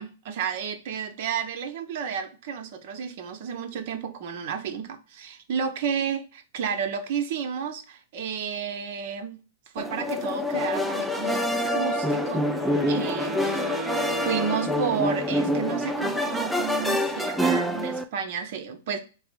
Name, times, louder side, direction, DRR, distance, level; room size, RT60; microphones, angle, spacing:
voice 1, 0.0-9.4 9.7-12.5 12.9-13.7 14.2-19.0, right 7 dB, 55° right, 0.8 m, -31 dB
sound 1, 9.8-18.0, left 1 dB, ahead, 0.4 m, -26 dB
Wind instrument woodwind instrument, 11.9-15.5, right 2 dB, 25° right, 0.9 m, -36 dB
4.6 x 2.0 x 4.6 m
hypercardioid pair, 125°, 0 cm